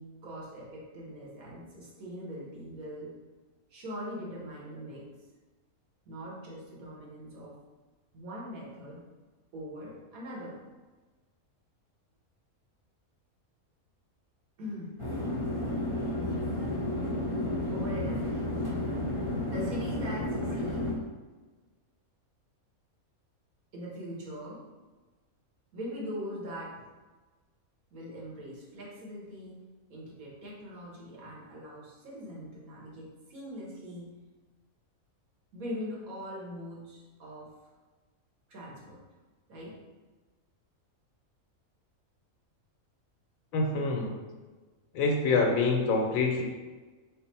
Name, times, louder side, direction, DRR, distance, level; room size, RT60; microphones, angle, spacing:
voice 1, 0.0-3.2 3.7-5.2 6.0-7.6 8.1-9.1 9.5-10.6 14.6-15.0 17.7-18.4 19.4-21.0 23.7-24.7 25.7-26.8 27.9-34.1 35.5-37.6 38.5-39.0 39.5-39.8, equal, 80° right, -4 dB, 1.5 m, -42 dB
sound 1, 15.0-20.9, left 1 dB, 25° right, 0.8 m, -32 dB
voice 2, 43.5-44.1 44.9-46.4, left 3 dB, 75° left, 1 dB, 1.0 m, -26 dB
4.2 x 2.1 x 4.1 m, 1.3 s
omnidirectional pair, 1.5 m